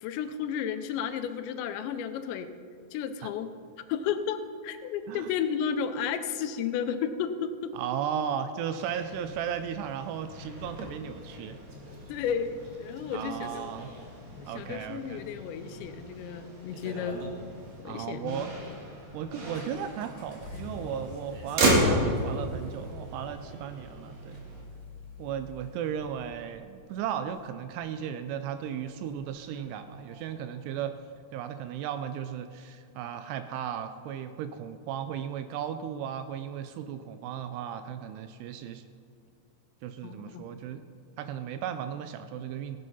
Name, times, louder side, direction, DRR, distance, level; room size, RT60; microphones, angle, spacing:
voice 1, 0.0-2.5 2.9-3.5 3.9-7.7 12.1-13.7 14.4-17.2 17.8-18.5 40.0-40.4, left 7 dB, 85° left, 9 dB, 2.9 m, -33 dB
voice 2, 7.7-11.6 13.1-13.9 14.5-15.2 17.8-18.5 19.1-24.4 25.2-31.0 31.3-38.9 39.8-40.8 41.2-42.8, right 9 dB, 85° right, 10 dB, 2.5 m, -35 dB
Motor vehicle (road), 8.8-24.6, right 1 dB, 50° right, 2.4 m, -34 dB
sound 1, 17.5-31.1, left 1 dB, 30° left, 2.8 m, -49 dB
17.5 x 8.2 x 5.5 m, 2.3 s
omnidirectional pair, 5.1 m